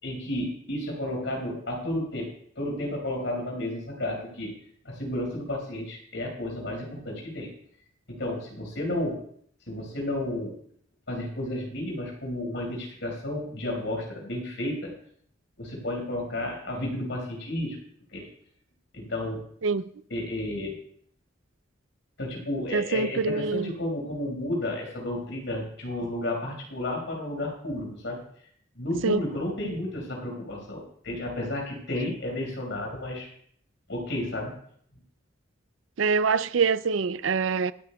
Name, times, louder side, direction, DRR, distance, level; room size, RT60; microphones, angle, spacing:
voice 1, 0.0-2.3 2.6-4.5 4.8-7.5 8.1-9.2 9.7-10.6 11.1-14.9 15.6-17.8 18.1-18.3 18.9-19.4 20.1-20.8 22.2-28.2 28.8-33.3 33.9-34.5, left 1 dB, 75° left, 5.2 m, -32 dB
voice 2, 22.7-23.7 29.0-29.3 36.0-37.7, right 5 dB, 85° right, 0.5 m, -25 dB
26.5 x 9.6 x 2.3 m
head